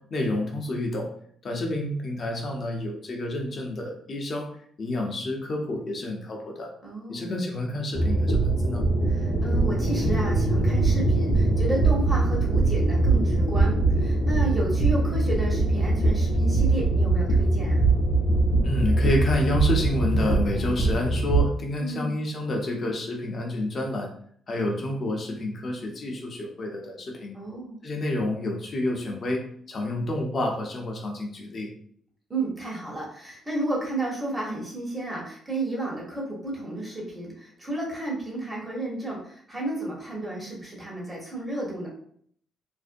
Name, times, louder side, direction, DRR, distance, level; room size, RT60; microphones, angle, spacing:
voice 1, 0.1-1.1 1.4-4.5 4.8-6.7 7.1-8.9 18.6-24.1 24.5-27.4 27.8-31.7, left 1 dB, 45° left, 1 dB, 0.7 m, -29 dB
voice 2, 6.8-7.3 9.1-17.9 21.8-22.1 27.3-27.8 32.3-41.9, right 1 dB, 20° right, -3 dB, 1.0 m, -32 dB
sound 1, 7.9-21.4, right 2 dB, 90° left, 0.7 m, -22 dB
2.5 x 2.1 x 2.5 m, 0.62 s
cardioid pair, 90°, 0 cm